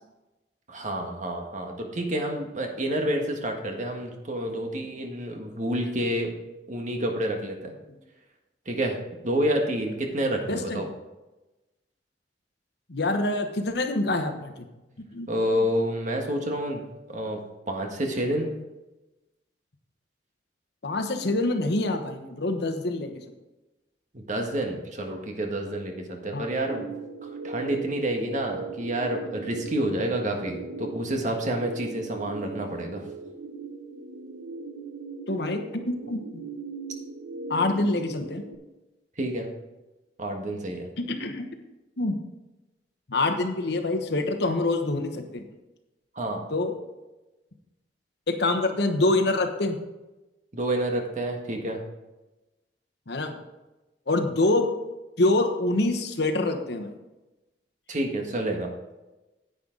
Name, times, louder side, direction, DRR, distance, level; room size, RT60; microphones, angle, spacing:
voice 1, 0.7-6.3 6.7-7.7 8.6-10.9 15.3-16.8 17.1-17.4 17.7-18.5 24.1-26.9 27.2-33.0 39.2-39.5 40.2-40.9 46.1-46.4 50.5-51.8 57.9-58.7, right 1 dB, 45° right, 3 dB, 1.6 m, -29 dB
voice 2, 10.5-10.8 12.9-14.7 15.1-15.3 20.8-23.2 26.3-26.5 35.3-36.4 37.5-38.4 41.0-41.5 42.0-42.2 43.1-45.4 46.5-46.7 48.3-49.8 53.1-53.3 54.1-54.7 55.2-56.9, left 2 dB, 70° left, 6 dB, 1.1 m, -26 dB
sound 1, 26.7-38.5, right 3 dB, 70° right, 0.9 m, -39 dB
10.0 x 8.8 x 3.9 m, 1.1 s
head